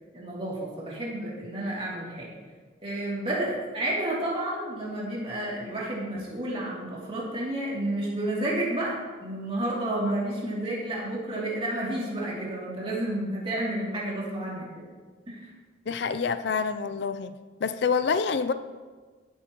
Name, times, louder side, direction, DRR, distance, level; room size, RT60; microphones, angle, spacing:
voice 1, 0.1-2.3 2.8-14.9 15.3-15.5, right 1 dB, 30° right, -5 dB, 2.7 m, -31 dB
voice 2, 15.9-17.3 17.6-18.5, left 5 dB, 60° left, 11 dB, 0.4 m, -27 dB
15.5 x 8.4 x 3.0 m, 1.4 s
head